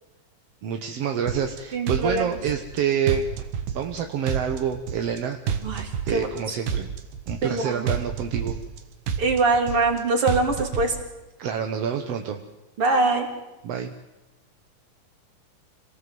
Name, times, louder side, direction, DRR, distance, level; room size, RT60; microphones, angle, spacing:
voice 1, 0.6-3.3 3.7-5.4 6.1-6.9 7.3-8.6 11.4-12.4 13.6-13.9, right 8 dB, 60° right, 5 dB, 2.0 m, -27 dB
sound 1, 1.3-1.6 1.9-2.8 3.1-4.0 4.3-5.2 5.5-6.4 6.7-7.6 7.9-8.8 9.1-10.0 10.3-10.9, right 7 dB, 90° right, 3.3 m, -29 dB
voice 2, 1.7-2.4 5.6-6.3 7.4-7.9 9.2-11.0 12.8-13.3, right 3 dB, 45° right, 4 dB, 3.8 m, -23 dB
27.0 x 19.5 x 7.8 m, 1.0 s
omnidirectional pair, 3.7 m